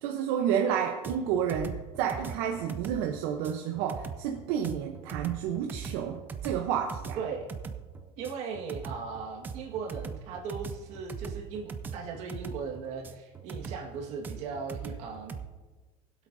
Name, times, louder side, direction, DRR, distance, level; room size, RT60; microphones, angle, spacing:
voice 1, 0.0-7.2, right 8 dB, 65° right, 3 dB, 0.8 m, -30 dB
sound 1, 1.0-15.5, right 6 dB, 15° right, 0.4 m, -40 dB
voice 2, 7.1-7.5 8.2-15.4, right 5 dB, 50° right, 1 dB, 1.7 m, -38 dB
21.0 x 8.1 x 2.7 m, 1.2 s
cardioid pair, 180°, 14 cm